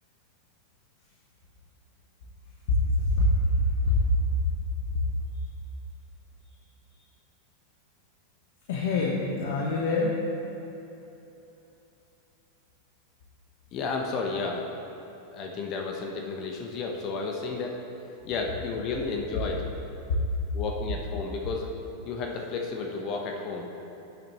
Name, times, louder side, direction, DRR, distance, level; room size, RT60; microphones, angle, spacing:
voice 1, 2.7-4.1 4.9-5.0 8.7-10.2 20.1-20.2, left 2 dB, 70° left, -3 dB, 1.2 m, -24 dB
voice 2, 13.7-14.6 15.3-17.8 18.2-19.6 20.5-21.7 22.0-23.6, left 4 dB, 45° left, 1 dB, 1.0 m, -32 dB
11.5 x 7.6 x 3.1 m, 3.0 s
hypercardioid pair, 100°, 0 cm